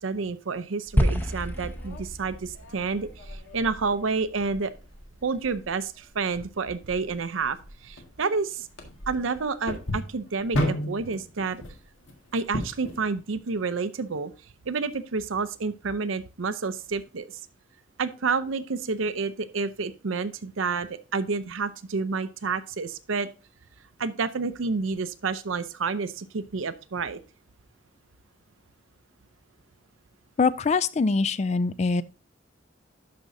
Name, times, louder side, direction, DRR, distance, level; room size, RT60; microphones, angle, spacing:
voice 1, 0.0-4.7 5.2-7.6 7.8-8.7 9.1-11.6 12.3-14.3 14.7-17.3 18.0-23.3 24.0-27.2, right 4 dB, 90° right, 0.6 m, -29 dB
sound 1, 0.9-13.0, equal, 85° left, 1.7 m, -36 dB
sound 2, 1.0-5.3, equal, 10° left, 0.7 m, -30 dB
voice 2, 30.4-32.0, left 4 dB, 35° left, 0.3 m, -23 dB
12.0 x 5.2 x 2.6 m
head